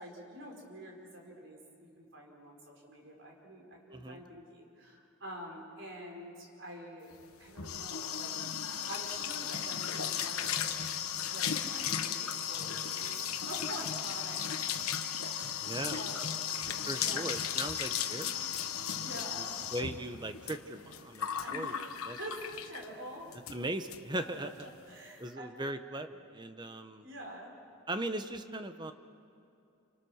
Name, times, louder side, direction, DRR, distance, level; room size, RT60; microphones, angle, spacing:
voice 1, 0.0-10.8 11.3-14.8 15.2-16.5 16.8-17.3 19.0-19.6 21.3-21.8 22.2-23.3 24.9-25.6 27.0-27.5, right 1 dB, 55° right, 0 dB, 5.2 m, -47 dB
sound 1, 7.2-22.9 23.3-23.6 23.9-24.0 24.3-24.6, left 8 dB, 85° left, 1.2 m, -36 dB
voice 2, 15.6-16.0 16.9-18.5 19.0-19.1 19.4-19.5 19.7-21.8 22.1-22.2 23.5-24.5 25.2-27.1 27.9-28.9, right 1 dB, 20° right, 9 dB, 0.9 m, -38 dB
29.0 x 25.0 x 6.5 m, 2.6 s
head